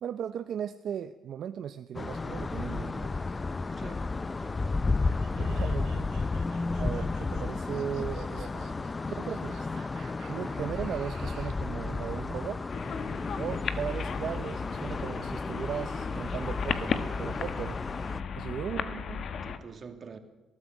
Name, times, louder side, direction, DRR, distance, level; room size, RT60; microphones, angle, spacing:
voice 1, 0.0-3.4 5.4-6.1 6.8-8.7 9.2-9.7 10.3-12.6 13.4-17.8 18.4-19.2, right 9 dB, 65° right, 10 dB, 0.7 m, -37 dB
sound 1, 1.9-18.2, left 3 dB, 25° left, 0.6 m, -33 dB
voice 2, 3.7-4.9 19.4-20.2, right 5 dB, 45° right, 7 dB, 2.5 m, -47 dB
sound 2, 5.1-11.7, right 9 dB, 85° right, 1.7 m, -52 dB
sound 3, 12.7-19.6, left 6 dB, 60° left, 1.5 m, -35 dB
20.0 x 13.5 x 9.6 m, 1.1 s
cardioid pair, 90°, 0 cm